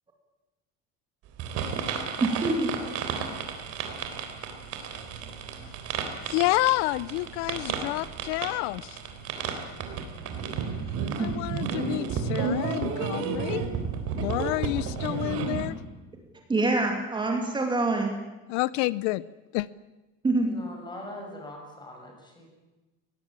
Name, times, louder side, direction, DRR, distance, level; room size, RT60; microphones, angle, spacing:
sound 1, 1.4-15.7, right 6 dB, 45° right, 3.7 m, -32 dB
voice 1, 2.2-2.7 11.2-11.3 16.5-18.1 20.2-20.5, right 2 dB, 15° right, 2 dB, 2.7 m, -25 dB
voice 2, 6.3-9.0 11.2-13.6 14.1-15.7 18.5-19.2 19.5-19.7, left 20 dB, 80° left, 19 dB, 0.7 m, -29 dB
voice 3, 20.4-22.5, left 1 dB, 15° left, 2 dB, 6.2 m, -42 dB
22.5 x 18.5 x 8.8 m, 1.1 s
cardioid pair, 175°, 34 cm